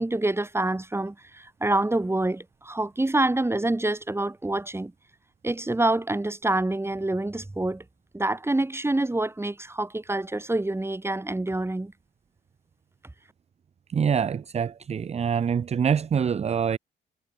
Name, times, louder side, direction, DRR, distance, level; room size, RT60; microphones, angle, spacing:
voice 1, 0.0-4.9 5.4-7.8 8.1-11.9, right 2 dB, 10° right, 5.0 m, -26 dB
voice 2, 13.9-16.8, right 7 dB, 35° right, 0.5 m, -25 dB
cardioid pair, 90°, 20 cm